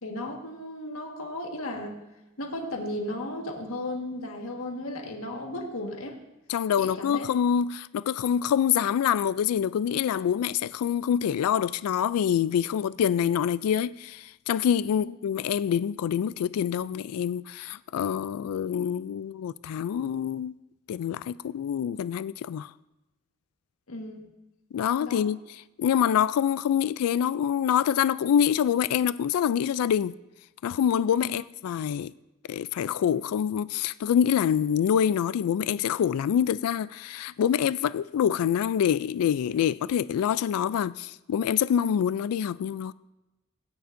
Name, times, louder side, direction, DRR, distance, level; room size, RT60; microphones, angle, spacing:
voice 1, 0.0-2.0 2.4-6.2 6.8-7.3 15.0-15.1 23.9-24.3 25.0-25.3 31.2-31.3, left 1 dB, 70° left, 1.6 m, -35 dB
voice 2, 6.5-20.5 20.9-22.7 24.7-25.4 25.8-30.2 30.6-32.1 32.5-42.9, left 8 dB, 90° left, 0.3 m, -26 dB
17.5 x 9.4 x 2.6 m
head